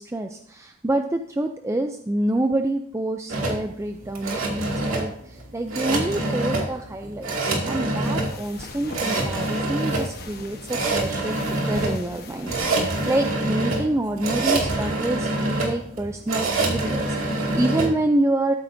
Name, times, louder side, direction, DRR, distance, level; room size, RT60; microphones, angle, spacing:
voice 1, 0.0-7.3 7.6-11.4 11.6-18.5, right 1 dB, 15° right, 5 dB, 0.4 m, -27 dB
sound 1, 3.3-17.9, right 2 dB, 85° right, 2.3 m, -26 dB
sound 2, 8.0-13.3, left 3 dB, 50° left, 1.2 m, -41 dB
13.5 x 8.6 x 2.7 m, 0.67 s
head